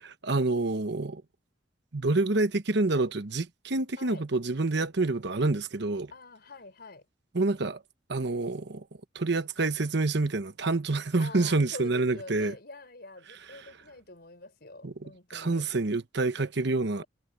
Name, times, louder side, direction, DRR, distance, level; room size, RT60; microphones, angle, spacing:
voice 1, 0.2-1.2 1.9-6.1 7.3-7.8 8.1-8.8 9.1-12.5 14.8-17.0, right 3 dB, 65° right, 1.0 m, -27 dB
voice 2, 6.1-7.0 11.2-15.7, left 2 dB, 55° left, 5.9 m, -46 dB
head